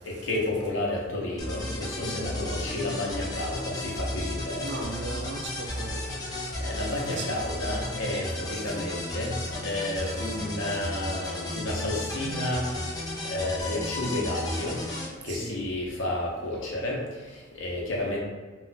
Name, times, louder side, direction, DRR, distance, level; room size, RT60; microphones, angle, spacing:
voice 1, 0.0-4.9 6.6-9.3 9.6-12.7 13.2-14.8 15.2-18.2, left 1 dB, 85° left, -3 dB, 0.7 m, -31 dB
sound 1, 1.4-15.1, left 2 dB, 20° left, 0.4 m, -34 dB
voice 2, 2.0-2.5 4.6-6.3 7.1-7.4 15.3-15.6, right 3 dB, 60° right, 2 dB, 0.4 m, -37 dB
2.3 x 2.2 x 3.9 m, 1.4 s
head